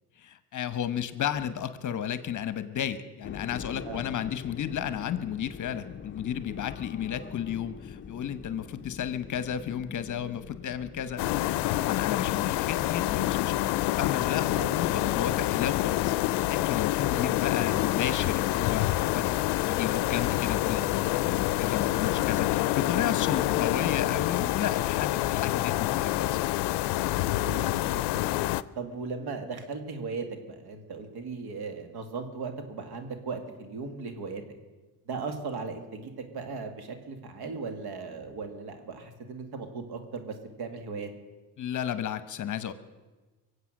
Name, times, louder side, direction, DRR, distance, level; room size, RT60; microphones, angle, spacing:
voice 1, 0.2-16.1 16.5-19.3 19.6-26.5 41.6-42.7, left 9 dB, 45° left, 13 dB, 1.0 m, -33 dB
sound 1, 3.2-21.0, left 6 dB, 30° left, 0.6 m, -46 dB
sound 2, 11.2-28.6, left 16 dB, 80° left, 0.5 m, -27 dB
voice 2, 14.6-14.9 17.1-17.4 25.2-25.4 27.3-28.3 28.7-34.4 35.1-41.1, right 4 dB, 70° right, 7 dB, 2.1 m, -37 dB
23.0 x 8.1 x 6.4 m, 1.2 s
cardioid pair, 105°, 40 cm